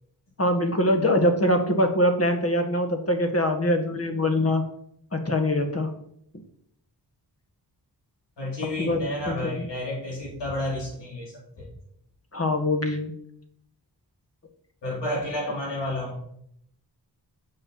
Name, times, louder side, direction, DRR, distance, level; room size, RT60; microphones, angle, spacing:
voice 1, 0.4-4.6 5.1-5.9 8.8-9.0 9.3-9.7 12.3-13.1, left 1 dB, 35° left, 5 dB, 1.9 m, -23 dB
voice 2, 8.4-11.7 14.8-16.2, left 1 dB, 90° left, -3 dB, 4.3 m, -31 dB
7.8 x 5.9 x 7.3 m, 0.70 s
cardioid pair, 70°, 41 cm